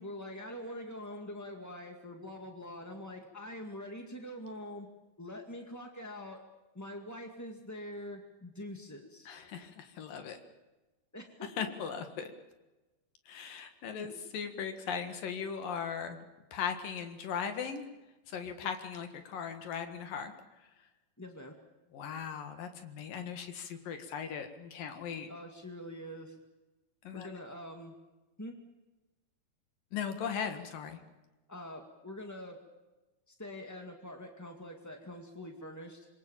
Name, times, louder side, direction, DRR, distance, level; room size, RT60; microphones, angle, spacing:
voice 1, 0.0-4.9 5.2-6.4 6.7-9.3 11.1-11.7 14.0-14.2 18.6-18.7 21.2-21.5 25.3-26.4 27.1-27.9 28.4-28.6 31.5-32.6 33.3-36.1, left 1 dB, 10° left, 3 dB, 0.9 m, -44 dB
voice 2, 9.3-10.4 11.6-12.3 13.3-16.2 16.5-17.8 18.3-20.3 21.9-25.3 27.0-27.3 29.9-31.0, left 7 dB, 70° left, 7 dB, 3.3 m, -38 dB
27.0 x 22.5 x 7.2 m, 1.1 s
omnidirectional pair, 4.2 m